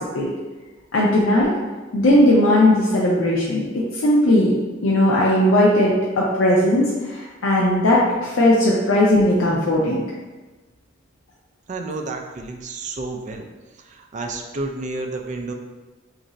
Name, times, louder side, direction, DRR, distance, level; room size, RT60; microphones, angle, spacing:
voice 1, 0.9-1.5 1.9-4.5 4.8-10.0, left 1 dB, 85° left, -5 dB, 0.5 m, -17 dB
voice 2, 11.7-13.4 13.9-15.5, right 3 dB, 40° right, 2 dB, 0.4 m, -30 dB
3.1 x 2.5 x 3.9 m, 1.2 s
head